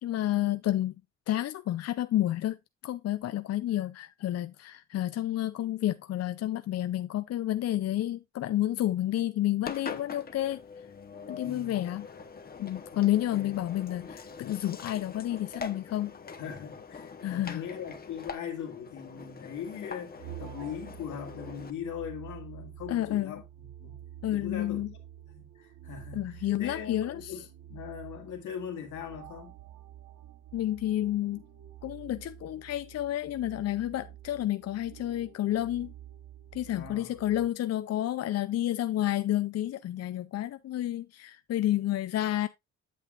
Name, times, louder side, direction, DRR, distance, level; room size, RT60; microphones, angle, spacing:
voice 1, 0.0-0.9 1.3-2.6 2.8-10.6 11.3-12.1 12.6-16.1 17.2-17.6 22.9-23.4 24.2-24.9 26.1-27.3 30.5-31.4 31.8-35.9 36.5-42.5, left 13 dB, 60° left, 0.5 m, -30 dB
Engine, 9.6-21.7, left 5 dB, 30° left, 0.9 m, -44 dB
voice 2, 11.4-11.8 13.3-13.5 16.4-24.0 24.3-24.8 25.4-29.6 36.6-37.2, left 8 dB, 90° left, 2.2 m, -40 dB
sound 1, 20.1-37.5, right 11 dB, 80° right, 1.2 m, -48 dB
8.5 x 7.3 x 2.4 m
cardioid pair, 90°, 29 cm